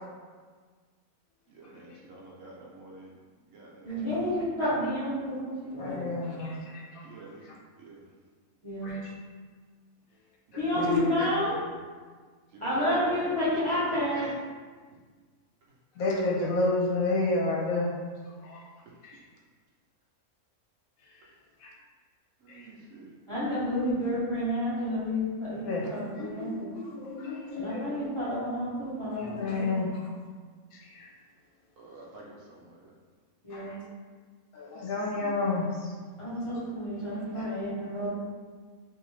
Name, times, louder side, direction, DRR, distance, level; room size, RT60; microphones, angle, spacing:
voice 1, 1.5-3.1 3.5-4.1 7.0-7.5 7.8-8.1 10.5-11.7 12.5-14.3 22.4-23.2 31.8-32.9, right 2 dB, 70° right, -4 dB, 0.9 m, -46 dB
voice 2, 3.8-6.1 8.6-9.0 10.6-11.6 12.6-14.3 23.3-26.8 27.5-29.8 33.4-33.8 36.2-38.1, left 1 dB, 30° left, -10 dB, 0.7 m, -30 dB
voice 3, 5.8-7.0 8.8-9.1 10.5-11.0 16.0-17.9 18.4-18.6 19.0-19.1 21.6-21.7 22.5-22.6 25.7-25.9 26.2-28.0 29.1-30.0 30.7-31.1 33.5-33.8 34.5-35.9 36.5-36.6 37.3-37.4, left 2 dB, 80° left, -2 dB, 1.0 m, -31 dB
2.7 x 2.5 x 3.1 m, 1.5 s
omnidirectional pair, 1.5 m